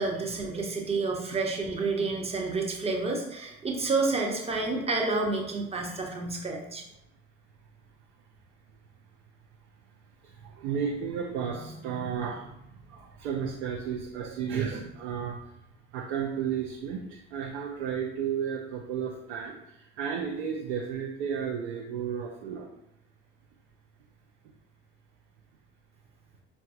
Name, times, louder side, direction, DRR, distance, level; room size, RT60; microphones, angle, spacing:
voice 1, 0.0-6.8, right 3 dB, 15° right, 1 dB, 0.7 m, -29 dB
voice 2, 10.4-12.6 12.9-15.4 15.9-19.5 20.0-22.7, right 7 dB, 60° right, -1 dB, 0.6 m, -33 dB
4.6 x 2.3 x 2.5 m, 0.82 s
figure-of-eight pair, 50°, 37 cm